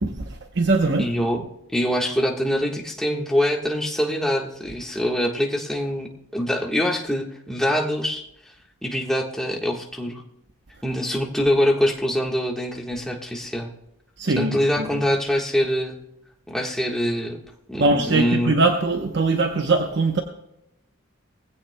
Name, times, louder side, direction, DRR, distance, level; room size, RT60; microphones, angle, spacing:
voice 1, 0.0-1.3 14.2-15.0 17.8-20.2, right 3 dB, 55° right, 4 dB, 0.9 m, -22 dB
voice 2, 1.0-1.4 1.7-8.2 8.8-10.2 10.8-13.7 14.4-16.0 16.5-17.4 17.7-18.5, equal, ahead, -1 dB, 1.4 m, -24 dB
20.5 x 16.0 x 2.2 m, 0.83 s
head